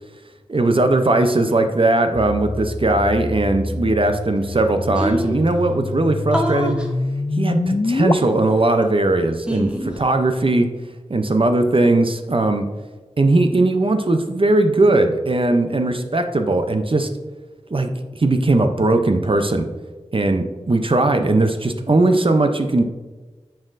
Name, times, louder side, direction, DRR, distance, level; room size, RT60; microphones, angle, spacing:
voice 1, 0.5-6.8 7.4-10.7 11.1-12.7 13.2-17.1 17.7-19.7 20.1-22.8, right 2 dB, 45° right, 6 dB, 0.6 m, -18 dB
sound 1, 2.2-8.1, left 2 dB, 30° left, 0.4 m, -26 dB
sound 2, 4.3-4.4 4.6-4.7 4.9-5.5 6.3-6.9 8.0-8.8 9.5-10.0, equal, 10° right, 1.0 m, -26 dB
9.3 x 4.4 x 2.5 m, 1.2 s
wide cardioid pair, 45°, 12 cm